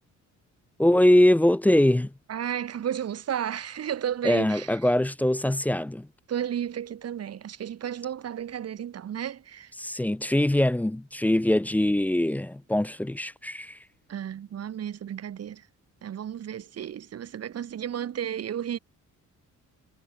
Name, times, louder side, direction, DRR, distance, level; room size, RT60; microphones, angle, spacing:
voice 1, 0.8-2.1 4.2-6.1 9.8-13.8, left 1 dB, 5° left, 0.4 m, -22 dB
voice 2, 2.3-4.8 6.3-9.7 14.1-15.7 16.0-18.8, right 9 dB, 55° right, 1.7 m, -33 dB
cardioid pair, 90°, 30 cm